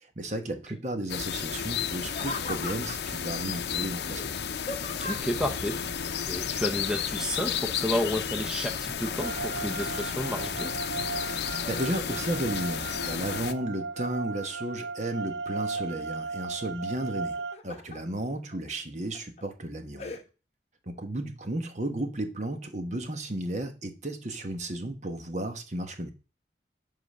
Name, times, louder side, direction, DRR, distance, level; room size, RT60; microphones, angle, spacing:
voice 1, 0.0-4.4 11.7-20.1 20.9-26.1, right 1 dB, 40° right, 1.1 m, -34 dB
sound 1, 1.1-13.5, left 7 dB, 70° left, 0.6 m, -33 dB
Laughter, 2.1-3.2 4.1-5.4 7.2-7.6 8.0-9.6 10.1-10.8 11.2-12.5 12.9-13.4 13.9-14.7 15.2-16.0 17.2-18.0 18.5-18.6 19.1-19.4 20.0-20.2, left 2 dB, 35° left, 1.1 m, -40 dB
voice 2, 5.0-5.7 6.3-10.7, left 1 dB, 5° right, 0.7 m, -31 dB
sound 2, 9.2-17.5, right 4 dB, 75° right, 0.6 m, -36 dB
10.5 x 3.9 x 6.5 m
head